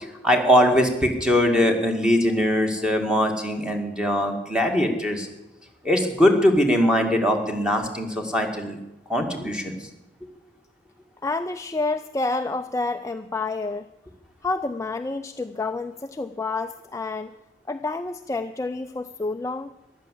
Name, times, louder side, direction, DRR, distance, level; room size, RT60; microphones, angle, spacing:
voice 1, 0.0-5.3 5.8-8.8 9.1-9.8, equal, 5° right, 3 dB, 2.0 m, -21 dB
voice 2, 11.2-13.8 14.4-17.3 17.7-19.7, left 3 dB, 15° left, 7 dB, 0.4 m, -29 dB
14.5 x 11.5 x 7.6 m, 0.98 s
head